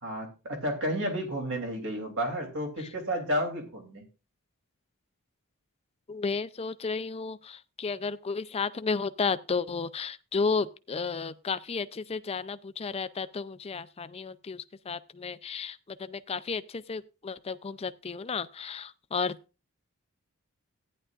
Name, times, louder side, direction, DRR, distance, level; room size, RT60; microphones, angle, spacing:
voice 1, 0.0-4.0, equal, 60° right, 3.0 m, -31 dB
voice 2, 6.1-19.4, left 4 dB, 25° left, 0.4 m, -33 dB
14.5 x 10.0 x 2.4 m
head